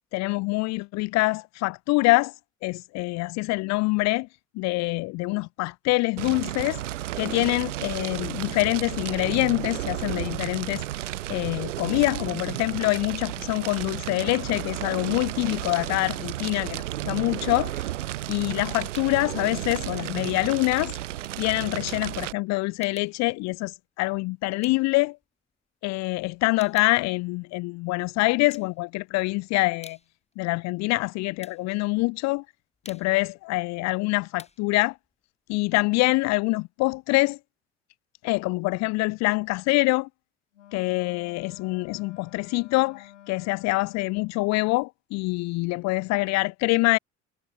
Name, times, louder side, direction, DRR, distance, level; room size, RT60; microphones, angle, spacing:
voice 1, 0.1-2.3 2.6-4.3 4.6-6.8 7.2-10.8 11.3-17.8 18.3-20.9 21.4-25.2 25.8-30.0 30.4-32.4 32.9-34.9 35.5-37.4 38.2-40.1 40.7-47.0, left 23 dB, 50° left, 0.5 m, -25 dB
Fire, 6.2-22.3, right 14 dB, 75° right, 1.7 m, -33 dB
sound 1, 18.9-19.3 19.7-25.9 26.2-28.0 28.4-29.2 29.6-36.3, left 3 dB, 15° left, 2.9 m, -53 dB
Wind instrument woodwind instrument, 40.5-44.4, left 12 dB, 75° left, 3.1 m, -50 dB
figure-of-eight pair, 50°, 37 cm